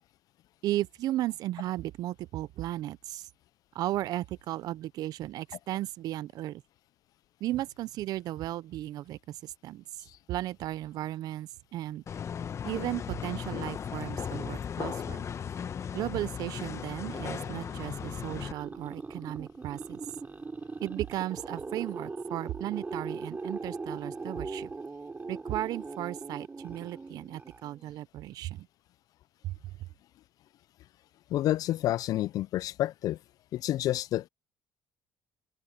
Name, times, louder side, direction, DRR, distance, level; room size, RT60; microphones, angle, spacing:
voice 1, 0.6-3.3 3.7-6.6 7.4-12.0 12.6-15.3 15.9-20.0 20.8-24.7 25.3-28.7 29.4-29.5, right 14 dB, 65° right, 0.6 m, -35 dB
sound 1, 12.1-18.5, left 7 dB, 45° left, 1.4 m, -36 dB
sound 2, 16.9-28.0, right 3 dB, 25° right, 3.8 m, -40 dB
voice 2, 31.3-33.2 33.5-34.3, left 14 dB, 60° left, 0.3 m, -29 dB
open air
supercardioid pair, 75°, 7 cm